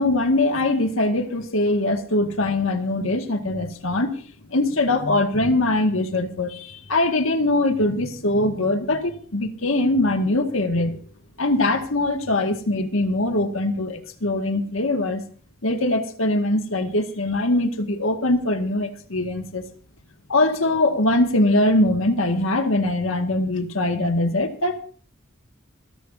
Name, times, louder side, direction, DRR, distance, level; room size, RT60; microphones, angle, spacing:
voice 1, 0.0-4.2 4.5-11.0 11.4-15.2 15.6-19.6 20.3-24.8, left 2 dB, 80° left, 5 dB, 1.9 m, -22 dB
28.0 x 11.5 x 2.7 m, 0.43 s
head